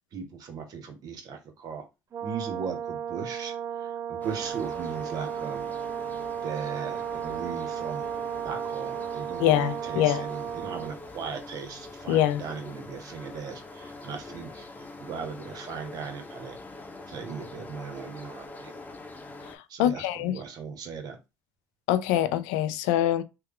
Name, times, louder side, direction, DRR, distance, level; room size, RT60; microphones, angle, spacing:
voice 1, 0.1-1.8 2.2-3.5 4.1-5.7 6.4-8.1 8.4-14.7 15.0-16.6 17.1-18.7 19.7-21.2, right 6 dB, 65° right, 1.0 m, -38 dB
Brass instrument, 2.1-11.0, right 9 dB, 45° right, 0.5 m, -34 dB
sound 1, 4.2-19.6, left 2 dB, 25° left, 0.8 m, -44 dB
voice 2, 9.4-10.3 12.1-12.4 19.5-20.4 21.9-23.2, left 12 dB, 90° left, 0.4 m, -24 dB
3.1 x 2.2 x 3.5 m
supercardioid pair, 75°, 7 cm